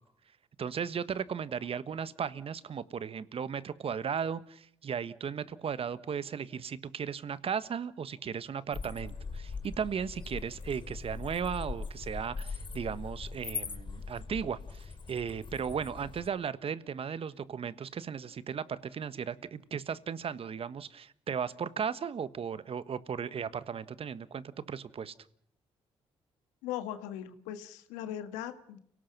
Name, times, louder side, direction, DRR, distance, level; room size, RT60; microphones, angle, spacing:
voice 1, 0.6-25.1, right 7 dB, 55° right, 15 dB, 1.4 m, -36 dB
sound 1, 8.7-16.3, left 4 dB, 45° left, 2.6 m, -41 dB
voice 2, 26.6-28.8, left 11 dB, 90° left, 10 dB, 1.6 m, -39 dB
30.0 x 18.0 x 6.0 m, 0.65 s
supercardioid pair, 55°, 12 cm